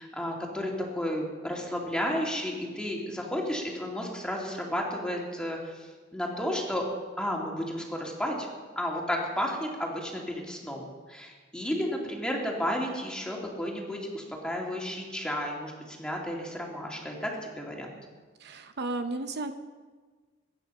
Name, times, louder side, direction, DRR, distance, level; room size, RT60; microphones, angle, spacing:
voice 1, 0.0-6.8 7.2-8.5 8.8-17.9, equal, 5° left, -1 dB, 2.7 m, -32 dB
voice 2, 18.4-19.5, right 2 dB, 60° right, 8 dB, 0.7 m, -33 dB
22.0 x 9.6 x 5.6 m, 1.4 s
head